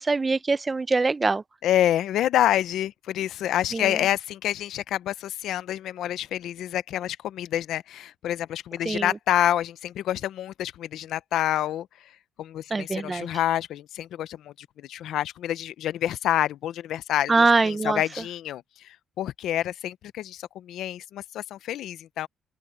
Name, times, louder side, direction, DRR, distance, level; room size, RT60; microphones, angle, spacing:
voice 1, 0.0-1.4 3.7-3.9 8.9-9.1 12.7-13.3 17.3-18.0, right 3 dB, 25° right, 0.7 m, -23 dB
voice 2, 1.6-11.9 12.4-22.3, left 12 dB, 80° left, 0.7 m, -27 dB
open air
cardioid pair, 90°, 0 cm